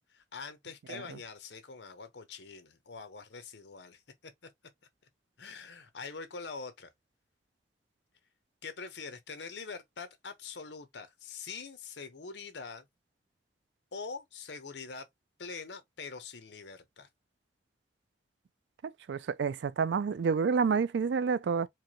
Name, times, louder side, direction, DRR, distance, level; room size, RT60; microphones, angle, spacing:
voice 1, 0.1-4.3 5.4-6.9 8.6-12.8 13.9-15.1 15.4-17.1, left 4 dB, 75° left, 0.8 m, -44 dB
voice 2, 19.1-21.7, right 5 dB, 80° right, 0.4 m, -28 dB
4.5 x 2.2 x 3.0 m
head